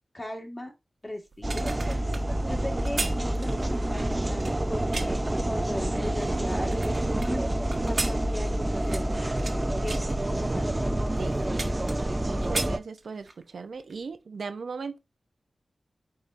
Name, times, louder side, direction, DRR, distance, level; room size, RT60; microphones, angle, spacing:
voice 1, 0.1-0.7 1.0-1.7 2.4-9.2 9.5-10.0 10.3-10.8 11.8-12.2, left 1 dB, 30° left, 1.6 m, -38 dB
sound 1, 1.3-5.3 5.9-7.3 7.7-9.6 9.9-10.1 10.7-10.8 11.1-12.2 12.4-13.4 13.8-14.0, right 3 dB, 60° right, 1.1 m, -36 dB
sound 2, 1.4-12.8, right 1 dB, 25° right, 0.4 m, -28 dB
voice 2, 12.2-15.0, right 5 dB, 80° right, 0.6 m, -38 dB
4.8 x 4.4 x 2.5 m
cardioid pair, 50°, 0 cm